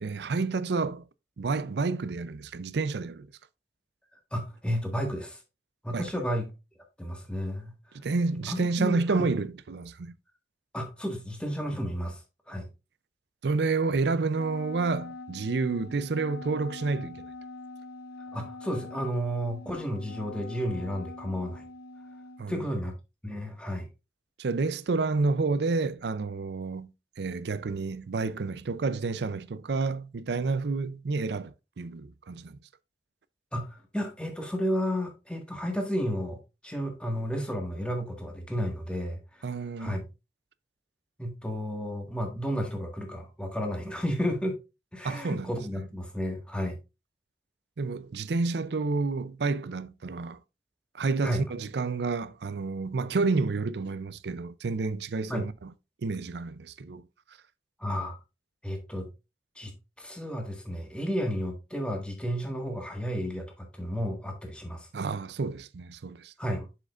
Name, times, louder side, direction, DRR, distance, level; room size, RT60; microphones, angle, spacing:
voice 1, 0.0-1.1 1.4-3.3 5.9-6.1 7.9-10.1 13.4-17.2 22.4-22.6 24.4-32.6 39.4-40.0 45.0-45.5 45.8-45.9 47.8-50.4 50.9-55.7 56.0-57.1 64.9-66.3, right 3 dB, 70° right, 0.5 m, -29 dB
voice 2, 4.3-5.4 5.8-6.5 7.0-7.7 8.5-9.3 10.7-12.2 12.5-12.7 18.3-21.6 22.5-22.9 23.2-23.9 33.5-36.4 36.6-39.4 39.8-40.0 41.2-44.6 44.9-46.8 51.2-51.4 55.3-55.5 57.8-58.2 58.6-59.1 59.5-64.9 66.4-66.7, equal, 5° left, 1.6 m, -32 dB
Wind instrument woodwind instrument, 14.3-22.5, left 2 dB, 60° left, 0.6 m, -44 dB
7.4 x 6.6 x 2.4 m
head